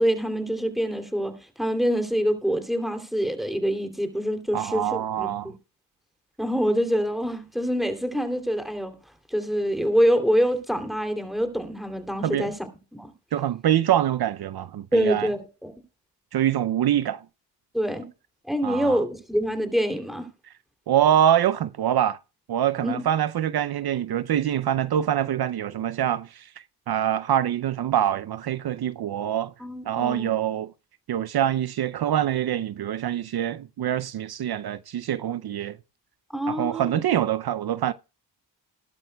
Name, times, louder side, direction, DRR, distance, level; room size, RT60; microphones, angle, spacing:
voice 1, 0.0-5.5 6.4-8.9 9.3-13.1 14.9-15.7 17.7-18.1 18.4-20.3 22.8-23.0 29.6-30.3 36.3-36.9, equal, ahead, 2.8 m, -25 dB
voice 2, 4.5-5.5 12.2-12.5 13.3-15.3 16.3-17.2 18.6-19.0 20.9-22.2 22.5-26.5 26.9-29.5 29.9-30.7 31.1-35.8 36.5-37.9, right 10 dB, 60° right, 0.6 m, -24 dB
16.5 x 12.0 x 2.2 m
cardioid pair, 60°, 42 cm